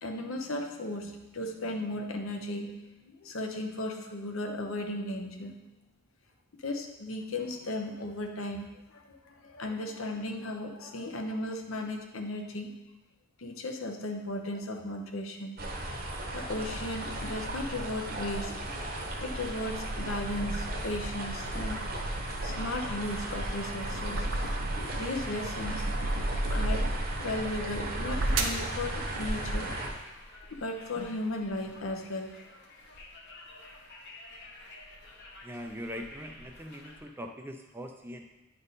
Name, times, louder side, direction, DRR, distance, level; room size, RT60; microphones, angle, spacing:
voice 1, 0.0-2.7 3.0-5.6 6.6-12.7 13.4-15.6 16.3-18.6 19.2-21.8 22.4-24.3 24.9-25.8 26.5-26.9 27.2-29.7 30.5-32.3, left 1 dB, 75° left, 3 dB, 0.9 m, -36 dB
sound 1, 15.6-29.9, right 1 dB, 45° right, 1.0 m, -36 dB
sound 2, 18.9-20.7 21.2-25.0 25.4-27.2 27.8-28.7, right 1 dB, 70° right, 0.7 m, -33 dB
Conversation, 28.4-37.0, left 2 dB, 55° left, 1.1 m, -51 dB
voice 2, 35.4-38.2, equal, 10° right, 3 dB, 0.4 m, -41 dB
9.8 x 3.5 x 4.1 m, 1.0 s
head